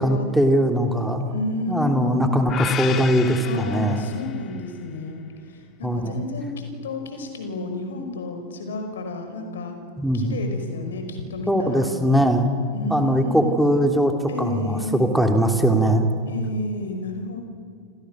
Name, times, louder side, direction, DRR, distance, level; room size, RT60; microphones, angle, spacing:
voice 1, 0.0-1.2 1.7-4.0 5.8-6.2 10.0-10.4 11.5-12.5 12.9-14.1 14.4-16.1, equal, ahead, 4 dB, 3.2 m, -20 dB
voice 2, 1.3-2.4 3.4-9.8 10.1-11.9 12.7-13.5 14.3-15.1 16.3-17.4, left 3 dB, 65° left, 6 dB, 5.3 m, -31 dB
sound 1, 2.5-4.7, left 10 dB, 30° left, 1.6 m, -32 dB
30.0 x 28.5 x 6.5 m, 2.3 s
figure-of-eight pair, 90°, 0 cm